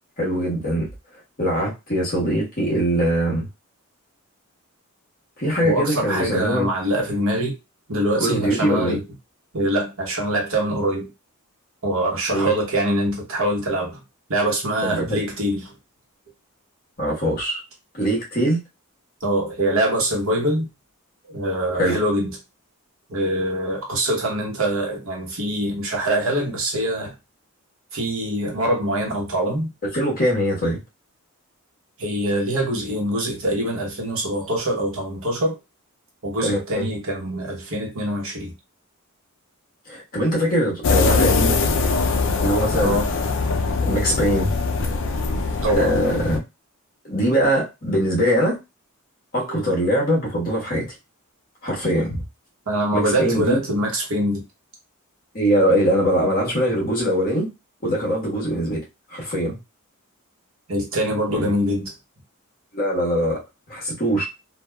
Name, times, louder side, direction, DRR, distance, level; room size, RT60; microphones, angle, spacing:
voice 1, 0.2-0.9 1.4-3.5 5.4-6.7 8.2-9.0 12.3-12.5 14.8-15.2 17.0-17.6 17.9-18.6 21.8-22.0 29.8-30.8 36.4-36.9 39.9-41.6 42.4-43.0 43.8-44.5 45.7-46.4 47.0-48.6 49.3-50.9 51.6-52.2 52.9-53.6 55.3-57.5 57.8-58.8 59.1-59.6 61.3-61.5 62.7-63.4 63.7-64.2, equal, 40° left, -4 dB, 1.2 m, -22 dB
voice 2, 5.6-7.6 7.9-9.0 9.5-11.1 11.8-14.0 14.3-15.7 19.2-20.7 21.3-22.4 23.1-27.1 27.9-29.7 32.0-35.6 36.2-38.5 42.8-43.1 45.6-45.9 49.5-49.6 52.7-54.4 60.7-61.9, right 1 dB, 65° right, -1 dB, 1.0 m, -24 dB
sound 1, 40.8-46.4, left 4 dB, 55° left, 0.4 m, -22 dB
3.2 x 2.3 x 2.2 m, 0.25 s
head